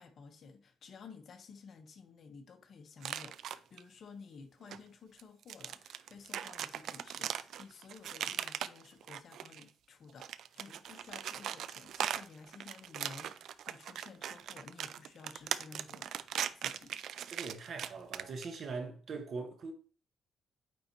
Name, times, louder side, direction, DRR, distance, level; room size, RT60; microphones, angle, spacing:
voice 1, 0.0-16.3 16.6-17.0, left 5 dB, 55° left, 1.1 m, -53 dB
sound 1, 3.0-3.8 4.7-4.8 5.2-9.7 10.1-18.6, right 10 dB, 70° right, 0.3 m, -39 dB
voice 2, 17.3-19.7, right 4 dB, 55° right, 1.5 m, -41 dB
9.0 x 3.9 x 3.0 m
cardioid pair, 90°, 0 cm